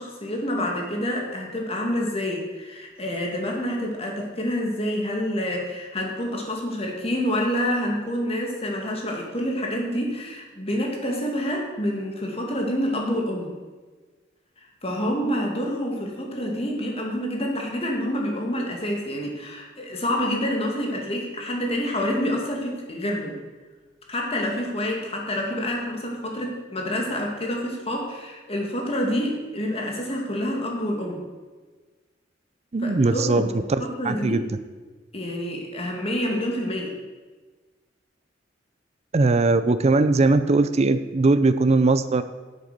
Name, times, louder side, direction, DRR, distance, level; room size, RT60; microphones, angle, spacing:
voice 1, 0.0-13.5 14.8-23.4 24.1-31.2 32.8-34.4 35.1-36.9, equal, 35° left, 0 dB, 2.3 m, -27 dB
voice 2, 32.7-34.4 39.1-42.2, right 3 dB, 35° right, 11 dB, 0.5 m, -20 dB
9.0 x 8.1 x 6.8 m, 1.3 s
head